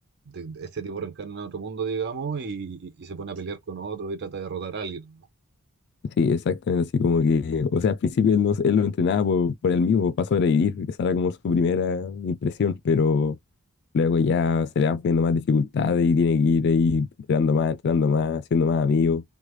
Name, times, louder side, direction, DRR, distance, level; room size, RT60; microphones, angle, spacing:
voice 1, 0.3-5.3, right 5 dB, 50° right, 0.4 m, -33 dB
voice 2, 6.2-13.4 13.9-19.2, left 5 dB, 50° left, 0.3 m, -22 dB
3.1 x 2.1 x 3.0 m
head